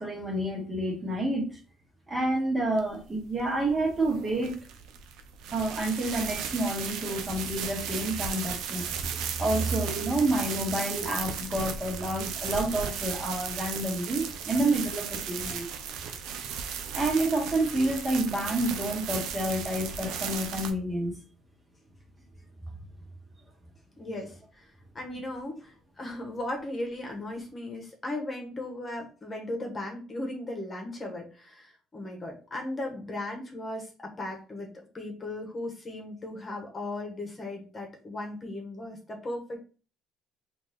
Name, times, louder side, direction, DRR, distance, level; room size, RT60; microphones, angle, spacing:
voice 1, 0.0-1.6 2.1-4.5 5.5-15.7 16.9-21.2, right 1 dB, 25° right, 0 dB, 1.6 m, -29 dB
sound 1, 2.8-20.7, right 7 dB, 80° right, 0.6 m, -36 dB
voice 2, 24.0-24.7 24.9-39.6, left 1 dB, 30° left, 1 dB, 1.3 m, -37 dB
4.1 x 2.8 x 3.6 m, 0.37 s
cardioid pair, 90°, 0 cm